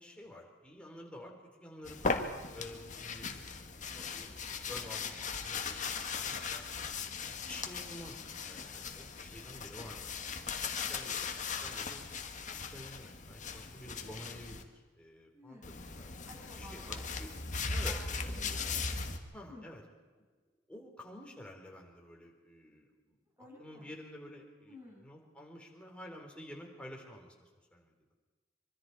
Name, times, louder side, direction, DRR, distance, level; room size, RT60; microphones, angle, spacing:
voice 1, 0.0-1.3 1.6-4.4 4.7-6.6 7.2-10.5 10.9-11.2 11.6-12.0 12.3-16.1 16.6-17.3 17.7-18.0 19.3-19.8 20.2-20.3 20.7-24.8 25.0-27.9, left 1 dB, 5° left, 0 dB, 3.5 m, -50 dB
sound 1, 1.8-14.6 15.6-19.2, left 4 dB, 40° left, 1.5 m, -38 dB
voice 2, 15.3-15.7 16.3-17.0 17.7-18.8 19.2-19.9 23.4-23.9 24.6-25.1, left 1 dB, 15° right, -2 dB, 6.6 m, -53 dB
24.5 x 24.0 x 4.7 m, 1.3 s
head